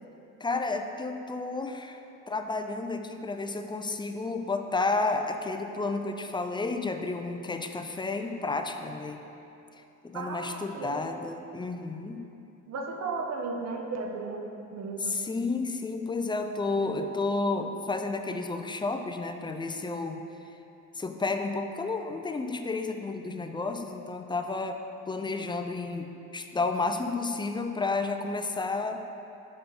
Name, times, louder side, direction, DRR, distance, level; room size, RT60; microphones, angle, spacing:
voice 1, 0.4-2.0 2.3-9.2 9.7-12.3 15.0-20.2 20.9-29.0, left 3 dB, 15° left, 6 dB, 0.4 m, -31 dB
voice 2, 10.1-11.1 12.7-14.4 14.7-15.2, right 3 dB, 60° right, 2 dB, 0.9 m, -35 dB
6.9 x 5.0 x 3.9 m, 2.9 s
cardioid pair, 90°, 30 cm